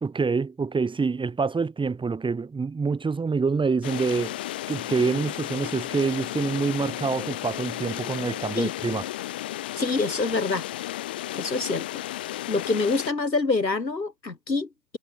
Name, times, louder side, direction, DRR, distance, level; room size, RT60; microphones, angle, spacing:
voice 1, 0.0-4.4 4.7-9.0, right 4 dB, 10° right, 3.0 m, -26 dB
sound 1, 3.8-13.1, left 15 dB, 5° left, 0.3 m, -33 dB
voice 2, 9.8-10.6 11.3-12.0 12.5-15.0, left 3 dB, 85° left, 2.4 m, -26 dB
figure-of-eight pair, 100°, 49 cm